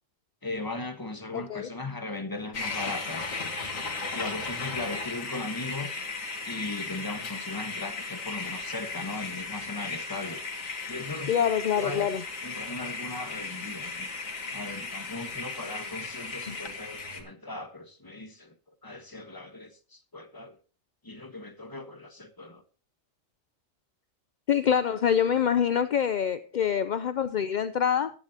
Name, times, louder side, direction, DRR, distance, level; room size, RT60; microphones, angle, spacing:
voice 1, 0.4-3.3 4.1-6.0 6.4-10.4 10.9-12.1 12.4-14.1 14.5-18.5 18.8-20.5 21.0-22.6, left 2 dB, 15° left, 1.3 m, -38 dB
voice 2, 1.3-1.7 11.3-12.2 16.5-16.6 24.5-28.1, left 8 dB, 50° left, 0.5 m, -25 dB
sound 1, 2.5-17.2, left 4 dB, 90° left, 2.3 m, -36 dB
15.5 x 10.5 x 2.9 m
omnidirectional pair, 1.3 m